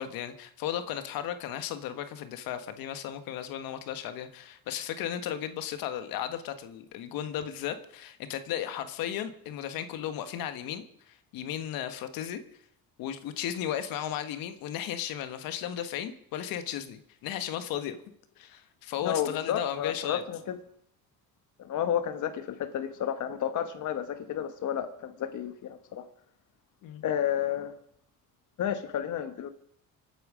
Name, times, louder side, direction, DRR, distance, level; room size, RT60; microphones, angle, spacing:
voice 1, 0.0-12.4 13.0-18.0 18.4-20.2 26.8-27.0, left 10 dB, 80° left, 10 dB, 1.6 m, -35 dB
voice 2, 19.0-20.6 21.6-26.0 27.0-27.7 28.6-29.5, left 9 dB, 60° left, 8 dB, 1.3 m, -31 dB
25.5 x 9.2 x 5.0 m, 0.69 s
cardioid pair, 95°, 34 cm